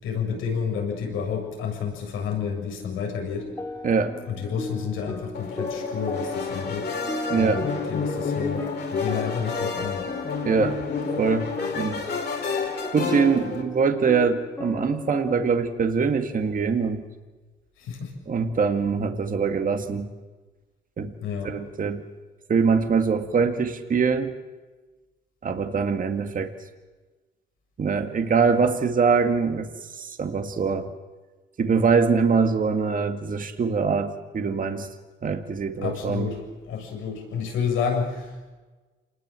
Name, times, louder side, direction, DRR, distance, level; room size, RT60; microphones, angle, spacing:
voice 1, 0.0-3.5 4.3-6.9 7.3-10.1 17.8-18.1 21.2-21.6 35.8-36.4 36.7-38.5, left 6 dB, 90° left, 1 dB, 7.0 m, -30 dB
sound 1, 3.4-15.5, left 2 dB, 15° left, 2.6 m, -37 dB
voice 2, 3.8-4.2 7.3-7.6 10.4-10.8 11.2-11.5 11.8-12.0 12.9-17.0 18.3-20.1 21.0-21.1 21.4-22.0 22.5-24.3 25.4-26.5 27.8-30.9 31.6-34.9 35.2-36.3, right 5 dB, 45° right, 6 dB, 2.1 m, -23 dB
sound 2, 5.3-13.6, left 4 dB, 55° left, 4.5 m, -30 dB
27.5 x 20.5 x 7.7 m, 1.3 s
cardioid pair, 90°, 20 cm